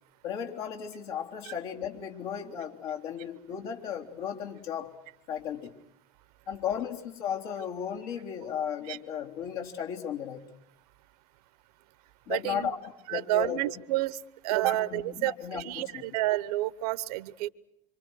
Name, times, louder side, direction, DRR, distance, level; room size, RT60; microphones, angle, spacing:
voice 1, 0.2-4.9 5.3-5.7 6.5-10.4 12.3-12.8 13.1-13.6 14.5-16.0, left 8 dB, 70° left, 0 dB, 3.8 m, -35 dB
voice 2, 12.3-12.7 13.1-14.2 14.4-17.5, right 16 dB, 70° right, 19 dB, 1.1 m, -30 dB
26.5 x 25.5 x 6.4 m, 0.81 s
hypercardioid pair, 80°, 20 cm